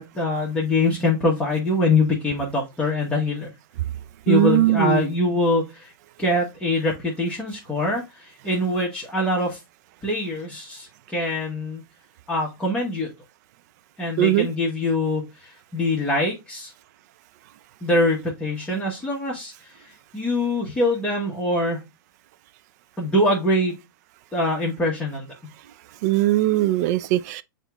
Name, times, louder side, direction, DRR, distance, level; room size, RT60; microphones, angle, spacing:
voice 1, 0.0-3.5 4.3-5.9 6.2-9.6 10.0-11.8 12.3-13.1 14.0-16.7 17.8-21.8 23.0-23.7 24.3-25.3, left 2 dB, 10° left, 1.2 m, -24 dB
voice 2, 4.3-5.0 14.2-14.5 26.0-27.4, right 15 dB, 50° right, 0.4 m, -19 dB
7.9 x 3.0 x 2.3 m
hypercardioid pair, 125°, 12 cm